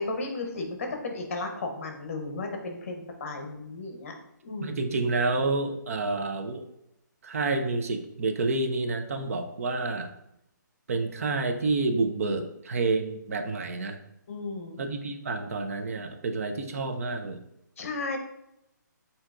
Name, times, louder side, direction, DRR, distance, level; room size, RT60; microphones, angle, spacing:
voice 1, 0.0-4.1 4.4-4.8 14.3-14.9 17.8-18.2, left 3 dB, 45° left, 3 dB, 0.9 m, -34 dB
voice 2, 4.6-6.6 7.2-10.1 10.9-14.0 14.8-17.4, right 3 dB, 50° right, 6 dB, 0.5 m, -29 dB
7.3 x 2.9 x 2.5 m, 0.81 s
hypercardioid pair, 165°, 10 cm